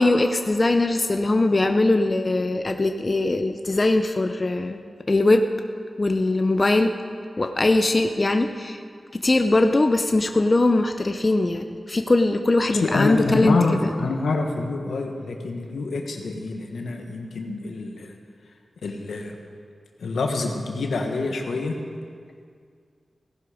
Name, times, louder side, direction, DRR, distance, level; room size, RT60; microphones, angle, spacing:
voice 1, 0.0-4.8 5.1-5.4 6.0-6.9 7.4-8.8 9.2-13.6 13.8-13.9, left 2 dB, 35° left, 6 dB, 0.7 m, -21 dB
voice 2, 12.8-18.1 18.8-19.4 20.0-21.7, left 3 dB, 90° left, 3 dB, 1.4 m, -26 dB
17.0 x 11.0 x 5.0 m, 2.1 s
wide cardioid pair, 70°, 0 cm